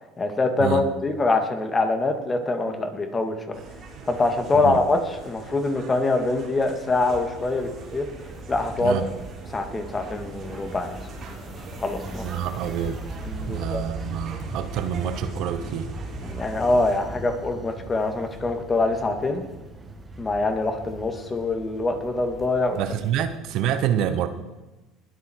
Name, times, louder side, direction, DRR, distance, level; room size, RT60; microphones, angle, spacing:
voice 1, 0.2-3.4 4.1-8.1 8.5-9.0 9.5-11.0 11.8-12.2 13.3-13.8 16.3-19.4 20.2-22.8, left 2 dB, 25° left, 6 dB, 2.3 m, -24 dB
sound 1, 3.5-17.0, right 4 dB, 50° right, 3.9 m, -42 dB
sound 2, 7.0-23.4, right 1 dB, 25° right, 2.1 m, -39 dB
voice 2, 12.2-13.0 13.4-15.9 22.8-24.3, right 10 dB, 65° right, 11 dB, 1.1 m, -27 dB
20.5 x 8.3 x 4.7 m, 1.1 s
supercardioid pair, 85°, 0 cm